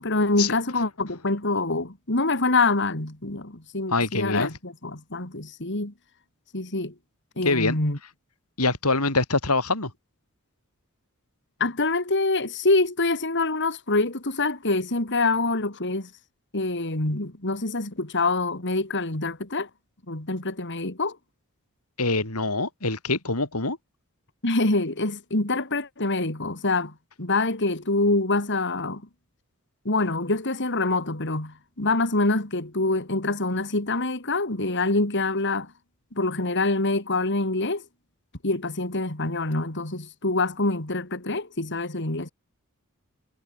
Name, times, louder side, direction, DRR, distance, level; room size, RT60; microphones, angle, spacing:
voice 1, 0.0-5.9 6.5-6.9 7.4-8.0 11.6-16.1 16.5-19.7 20.1-21.2 24.4-29.0 29.9-35.7 36.2-37.8 38.4-42.3, left 2 dB, 55° left, 3.5 m, -25 dB
voice 2, 3.9-4.5 7.4-7.8 8.6-9.9 22.0-23.8, left 3 dB, 90° left, 6.7 m, -24 dB
head